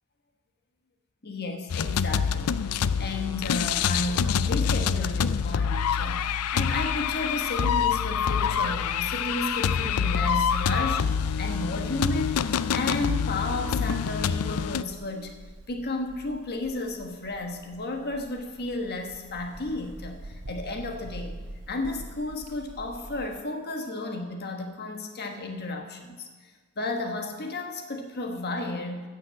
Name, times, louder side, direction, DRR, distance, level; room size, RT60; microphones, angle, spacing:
voice 1, 1.2-11.1 11.4-15.3 15.7-21.4 21.7-26.3 26.7-29.1, left 2 dB, 45° left, 4 dB, 1.4 m, -33 dB
sound 1, 1.7-14.8, left 7 dB, 80° left, 0.4 m, -26 dB
Bird, 5.4-23.4, right 1 dB, 75° right, 1.4 m, -46 dB
15.5 x 6.3 x 6.4 m, 1.4 s
head